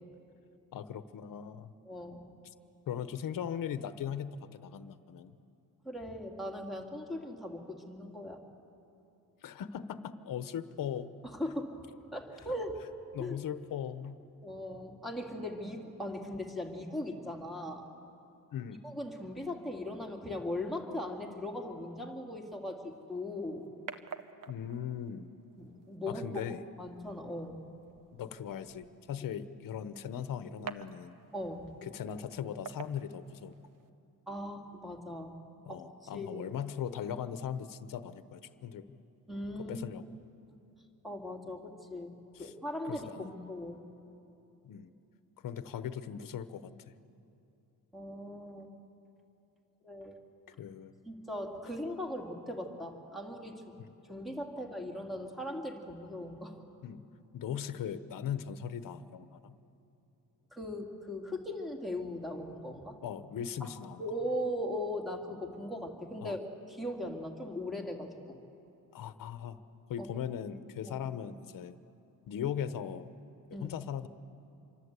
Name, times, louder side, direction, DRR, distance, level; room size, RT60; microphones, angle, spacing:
voice 1, 0.7-1.7 2.9-5.3 9.4-11.2 13.1-14.2 18.5-18.8 24.5-25.3 26.1-26.6 28.1-31.2 31.8-33.6 35.7-38.9 39.7-40.0 42.3-42.5 42.8-43.3 44.6-44.9 45.4-46.9 50.6-50.9 53.8-53.9 56.8-57.1 57.3-59.5 63.0-64.0 66.2-66.4 68.9-69.6 69.9-71.8 72.3-73.1 73.6-74.1, left 8 dB, 65° left, 12 dB, 1.0 m, -39 dB
voice 2, 1.9-2.2 5.8-8.5 11.2-11.8 12.1-12.8 13.2-13.4 14.4-17.8 18.8-23.7 25.6-26.5 26.8-27.6 31.3-31.7 34.3-35.3 35.7-36.4 39.3-39.8 41.0-43.8 47.9-48.7 49.8-50.1 51.1-53.7 54.1-56.6 60.5-63.0 63.6-66.4 66.7-68.4 70.0-70.1 70.9-71.0 73.5-73.8, left 1 dB, ahead, 2 dB, 2.2 m, -39 dB
sound 1, 22.9-33.9, right 7 dB, 65° right, 1.0 m, -51 dB
26.5 x 24.5 x 8.2 m, 2.9 s
wide cardioid pair, 170°, 35 cm